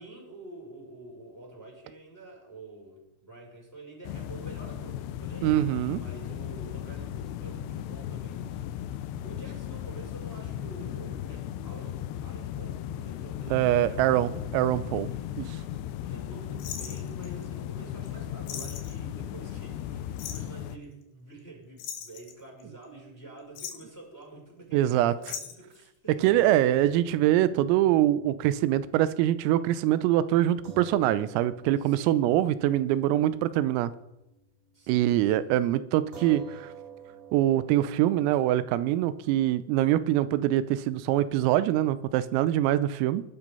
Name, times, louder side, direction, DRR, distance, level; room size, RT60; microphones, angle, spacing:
voice 1, 0.0-5.5 5.9-8.9 9.2-14.4 15.0-26.3 31.8-32.1 34.7-35.5, right 2 dB, 5° left, 1 dB, 5.0 m, -48 dB
sound 1, 4.0-20.8, left 11 dB, 85° left, 2.4 m, -36 dB
voice 2, 5.4-6.0 13.5-15.1 15.4-15.5 24.7-25.1 26.1-33.9 34.9-36.7 37.3-43.2, right 13 dB, 90° right, 15 dB, 3.5 m, -24 dB
sound 2, 16.6-17.4 18.1-18.2 18.5-19.0 20.2-20.5 21.8-22.8 23.4-23.9 25.2-25.8 26.8-27.2 27.4-27.5, left 8 dB, 70° left, 3.7 m, -39 dB
sound 3, 26.2-34.8 35.1-35.2 36.1-42.7, right 5 dB, 45° right, 4.4 m, -51 dB
20.5 x 12.0 x 5.4 m, 0.91 s
omnidirectional pair, 5.9 m